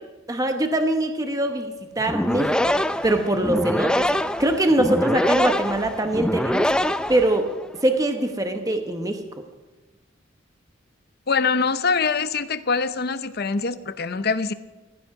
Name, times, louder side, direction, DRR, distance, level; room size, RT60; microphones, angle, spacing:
voice 1, 0.3-4.1 4.4-6.7 7.1-7.5 7.8-9.2, right 1 dB, 20° right, 5 dB, 1.0 m, -23 dB
sound 1, 2.0-7.7, left 1 dB, 5° left, 0.4 m, -24 dB
voice 2, 11.3-14.5, left 5 dB, 55° left, 12 dB, 0.8 m, -24 dB
16.0 x 14.5 x 4.9 m, 1.2 s
head